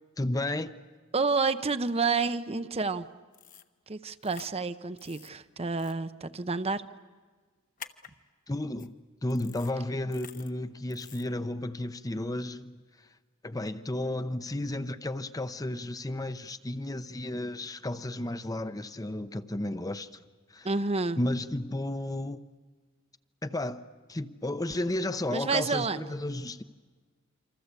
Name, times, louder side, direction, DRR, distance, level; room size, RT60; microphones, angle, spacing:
voice 1, 0.2-0.7 8.5-8.9 9.2-12.8 13.4-20.1 20.5-20.7 21.2-22.4 23.4-26.6, left 1 dB, 20° left, 0.8 m, -33 dB
voice 2, 1.1-3.1 3.9-6.8 20.6-21.2 25.3-26.1, right 4 dB, 30° right, 0.8 m, -29 dB
sound 1, 3.3-3.7 4.2-4.5 5.0-5.3 5.8-5.9 7.8-8.1 8.8-8.9 9.3-9.7 10.1-10.5 10.9-11.3, left 8 dB, 40° left, 1.1 m, -48 dB
27.5 x 25.5 x 8.3 m
head